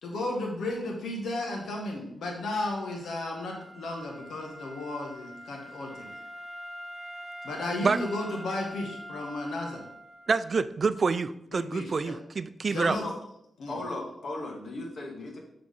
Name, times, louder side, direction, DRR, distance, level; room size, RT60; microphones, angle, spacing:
voice 1, 0.0-6.1 7.4-9.8 11.5-12.1 12.7-13.0 13.6-13.8, left 2 dB, 80° left, 0 dB, 1.8 m, -34 dB
Wind instrument woodwind instrument, 2.8-10.5, equal, 5° left, 2.8 m, -44 dB
voice 2, 10.3-13.0, right 4 dB, 50° right, 14 dB, 0.4 m, -27 dB
voice 3, 12.7-13.1 13.7-15.4, left 2 dB, 65° left, 1 dB, 1.8 m, -37 dB
7.6 x 4.9 x 3.7 m, 0.77 s
cardioid pair, 70°, 0 cm